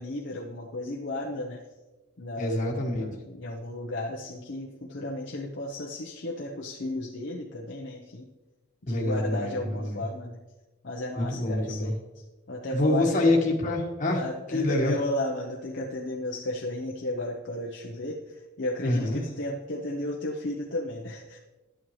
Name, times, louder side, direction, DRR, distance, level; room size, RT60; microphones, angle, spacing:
voice 1, 0.0-1.6 2.2-8.3 8.9-10.4 10.8-13.4 14.2-21.4, left 1 dB, 60° left, -1 dB, 0.8 m, -34 dB
voice 2, 2.4-3.1 8.9-10.0 11.2-11.9 12.7-14.2 14.5-14.9 18.8-19.2, left 2 dB, 40° left, -1 dB, 1.4 m, -26 dB
12.0 x 8.9 x 3.2 m, 1.1 s
head